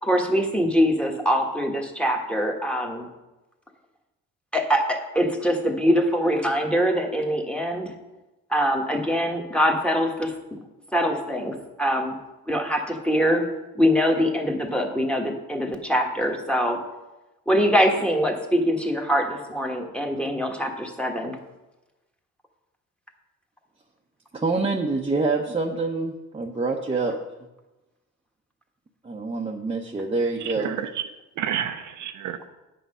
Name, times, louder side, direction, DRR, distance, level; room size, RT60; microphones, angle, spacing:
voice 1, 0.0-3.1 4.5-7.9 8.5-10.3 10.9-12.1 12.5-13.4 13.7-16.8 17.5-21.4, equal, 5° left, 2 dB, 1.4 m, -23 dB
voice 2, 24.3-27.1 29.0-30.7, right 3 dB, 20° right, -1 dB, 0.8 m, -26 dB
voice 3, 30.4-31.0 31.4-32.5, right 9 dB, 75° right, 8 dB, 0.7 m, -30 dB
8.5 x 5.9 x 5.6 m, 1.0 s
cardioid pair, 90°, 30 cm